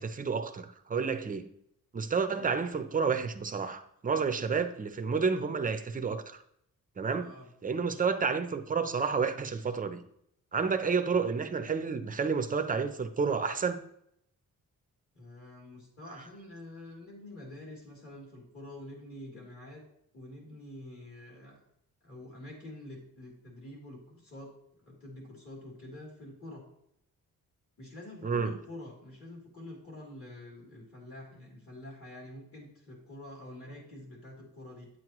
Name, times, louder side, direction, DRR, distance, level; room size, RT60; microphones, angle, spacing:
voice 1, 0.0-1.5 1.9-6.4 7.0-7.3 7.6-10.0 10.5-13.9 28.2-28.5, right 5 dB, 25° right, 0.6 m, -30 dB
voice 2, 7.2-7.5 15.1-19.8 20.1-21.6 22.0-24.5 24.8-26.6 27.8-34.9, left 1 dB, 40° left, 3.2 m, -47 dB
9.7 x 7.6 x 3.0 m
wide cardioid pair, 150°, 34 cm